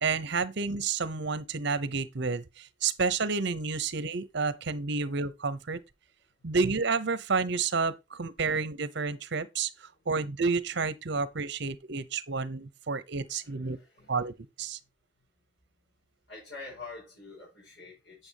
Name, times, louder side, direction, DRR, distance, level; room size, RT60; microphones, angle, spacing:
voice 1, 0.0-5.8 6.4-13.8 14.1-14.8, right 4 dB, 60° right, 0.9 m, -30 dB
voice 2, 13.3-14.2 16.3-18.3, left 3 dB, 65° left, 6.2 m, -46 dB
8.8 x 7.8 x 2.9 m
head